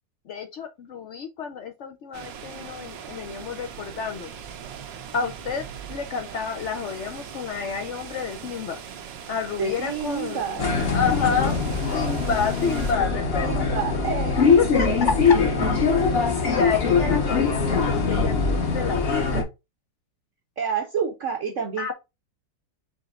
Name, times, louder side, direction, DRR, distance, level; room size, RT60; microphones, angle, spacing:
voice 1, 0.3-4.3 5.1-5.6 5.9-8.8 9.3-10.4 10.9-11.6 11.9-13.7 14.4-14.9 15.2-15.4 16.0-16.1 16.4-19.5 21.8-21.9, left 6 dB, 75° left, 0.6 m, -29 dB
sound 1, 2.1-12.9, right 7 dB, 80° right, 1.5 m, -40 dB
voice 2, 9.6-10.7 13.4-14.3 20.6-21.9, right 6 dB, 55° right, 0.9 m, -28 dB
sound 2, 10.6-19.4, left 4 dB, 40° left, 1.1 m, -22 dB
4.9 x 4.2 x 2.4 m
omnidirectional pair, 1.9 m